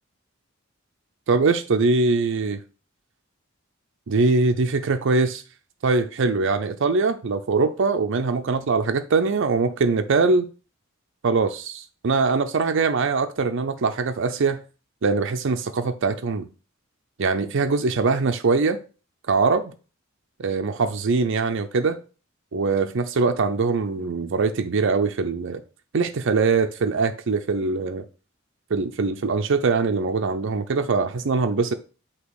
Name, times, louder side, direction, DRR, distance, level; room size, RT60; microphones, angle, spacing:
voice 1, 1.3-2.6 4.1-5.4 5.8-10.5 11.2-14.6 15.0-16.5 17.2-18.8 19.3-19.7 20.4-22.0 22.5-25.6 25.9-28.0 28.7-31.7, right 4 dB, 65° right, 0.5 m, -22 dB
8.3 x 2.9 x 6.2 m
head